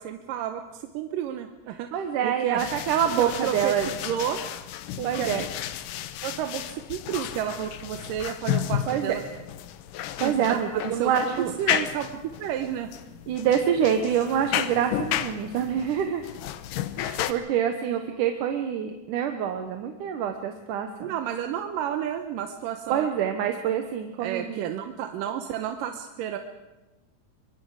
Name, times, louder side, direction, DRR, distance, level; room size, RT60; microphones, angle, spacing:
voice 1, 0.0-1.9 2.2-2.7 3.2-4.4 5.0-5.3 6.2-9.2 10.2-12.9 21.0-23.1 24.2-26.4, right 10 dB, 90° right, 6 dB, 2.5 m, -31 dB
voice 2, 1.9-3.9 5.0-5.5 8.9-9.2 10.2-11.6 13.3-16.3 17.0-21.1 22.9-24.7, right 8 dB, 75° right, 6 dB, 2.5 m, -26 dB
sound 1, 2.6-17.3, left 11 dB, 85° left, 2.5 m, -33 dB
24.0 x 23.5 x 4.8 m, 1.1 s
omnidirectional pair, 3.8 m